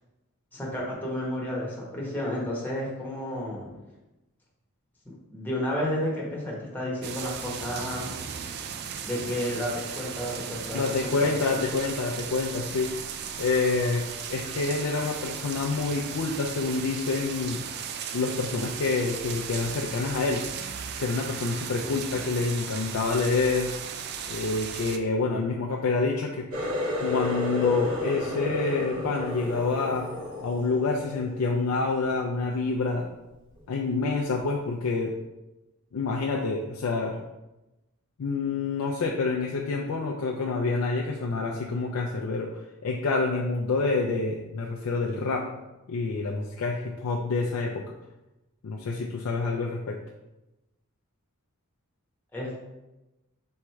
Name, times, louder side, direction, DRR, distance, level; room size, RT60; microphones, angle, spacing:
voice 1, 0.5-3.7 5.3-8.2 9.0-11.6 52.3-52.6, left 1 dB, 10° left, -4 dB, 1.1 m, -31 dB
sound 1, 7.0-25.0, right 7 dB, 50° right, 0.3 m, -36 dB
voice 2, 10.7-12.9 13.4-17.6 18.1-20.4 21.0-23.7 24.3-26.4 27.0-30.1 30.4-33.1 33.7-35.2 35.9-37.2 38.2-45.5 45.9-47.8 48.6-50.0, left 3 dB, 90° left, 0 dB, 0.4 m, -27 dB
Water tap faucet, 26.5-32.0 32.4-32.8 33.3-33.6 34.3-34.4, left 1 dB, 75° right, 1.6 m, -32 dB
3.5 x 3.1 x 4.5 m, 1.0 s
head